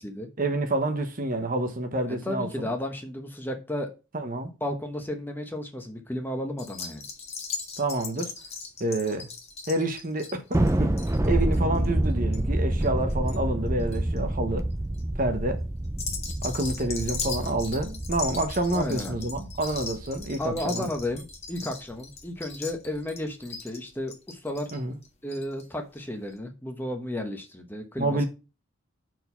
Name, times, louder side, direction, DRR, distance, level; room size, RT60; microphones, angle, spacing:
voice 1, 0.4-2.7 4.1-4.5 7.8-8.3 8.8-9.3 9.7-10.9 11.2-14.7 15.2-15.6 16.4-20.9 24.7-24.9 28.0-28.3, right 2 dB, 40° right, 1.0 m, -28 dB
voice 2, 2.2-3.9 4.6-7.0 18.7-19.2 20.4-24.7 25.2-28.3, left 1 dB, 10° left, 1.0 m, -33 dB
sound 1, 6.6-13.4 13.7-14.2 14.7-15.0 15.9-25.7 26.0-26.1 26.3-26.4, left 5 dB, 30° left, 1.5 m, -39 dB
Thunder, 10.5-21.2, right 1 dB, 15° right, 0.5 m, -28 dB
6.4 x 4.7 x 5.6 m
head